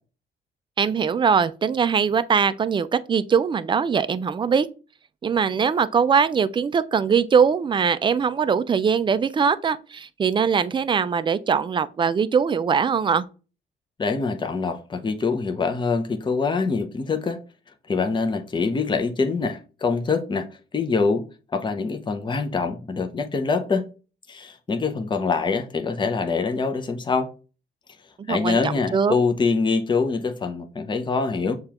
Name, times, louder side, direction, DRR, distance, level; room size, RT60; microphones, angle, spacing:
voice 1, 0.8-4.7 5.2-13.2 28.3-29.1, right 6 dB, 25° right, 0.4 m, -21 dB
voice 2, 14.0-17.4 17.9-20.5 20.7-21.2 21.5-23.8 24.3-27.3 28.3-31.6, left 4 dB, 25° left, 0.6 m, -24 dB
6.6 x 2.4 x 2.9 m
cardioid pair, 90°, 20 cm